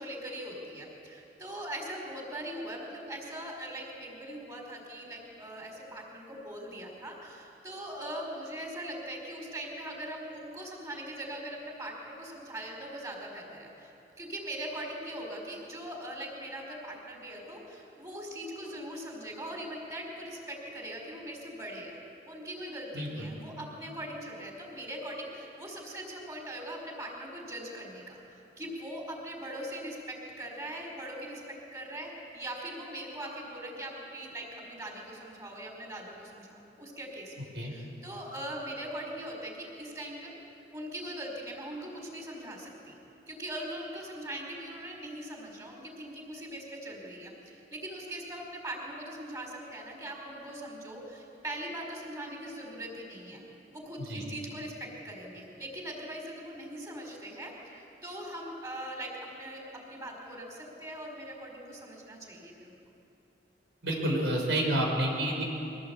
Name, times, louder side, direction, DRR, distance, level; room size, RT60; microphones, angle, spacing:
voice 1, 0.0-22.0 22.3-31.4 31.7-37.3 37.7-40.4 40.7-43.0 43.3-53.4 53.7-62.8, right 1 dB, 20° right, 0 dB, 4.8 m, -41 dB
voice 2, 22.9-23.3 37.5-37.7 54.0-54.2 63.8-65.5, right 1 dB, 85° right, 0 dB, 4.8 m, -29 dB
23.5 x 18.0 x 8.5 m, 2.8 s
head